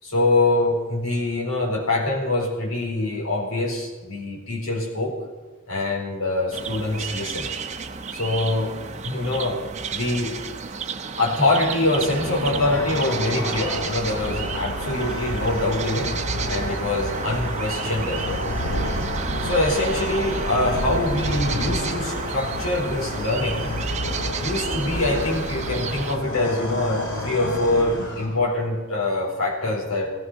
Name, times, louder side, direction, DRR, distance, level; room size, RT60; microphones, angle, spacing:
voice 1, 0.0-5.2 5.7-7.6 8.1-8.7 9.0-9.6 9.9-10.4 11.2-16.1 16.5-18.4 19.4-23.7 24.4-30.1, left 2 dB, 80° left, -2 dB, 4.3 m, -24 dB
sound 1, 6.5-26.2, right 5 dB, 30° right, 0.8 m, -32 dB
sound 2, 11.7-28.7, left 1 dB, 55° left, 2.8 m, -30 dB
16.5 x 14.5 x 5.7 m, 1.3 s
head